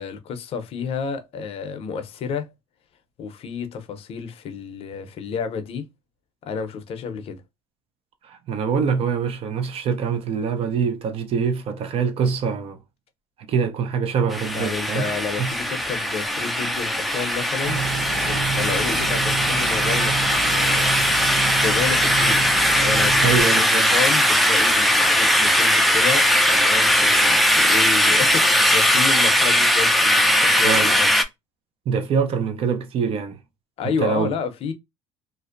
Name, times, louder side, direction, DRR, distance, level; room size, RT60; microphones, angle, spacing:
voice 1, 0.0-2.5 3.2-5.9 6.4-7.4 14.5-17.8 18.3-21.0 21.6-22.4 22.7-31.1 33.8-34.7, left 6 dB, 55° left, 0.6 m, -30 dB
voice 2, 8.2-12.8 13.5-15.1 15.4-15.5 23.2-23.9 30.6-31.0 31.9-33.4 33.8-34.3, right 6 dB, 50° right, 0.6 m, -24 dB
sound 1, 14.3-31.2, equal, ahead, 0.4 m, -19 dB
sound 2, 17.6-23.4, right 6 dB, 85° right, 0.8 m, -29 dB
2.5 x 2.0 x 2.5 m
supercardioid pair, 90°, 12 cm